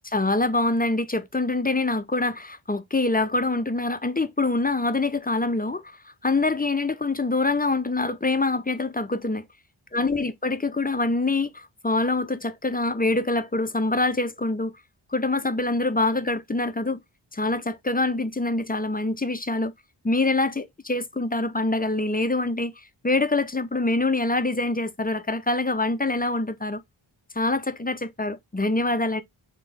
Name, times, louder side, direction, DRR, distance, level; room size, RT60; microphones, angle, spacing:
voice 1, 0.0-9.4 9.9-14.7 15.1-17.0 17.3-19.7 20.0-26.8 27.4-29.2, left 2 dB, 20° left, 0.4 m, -25 dB
3.8 x 2.9 x 4.8 m
wide cardioid pair, 65°, 48 cm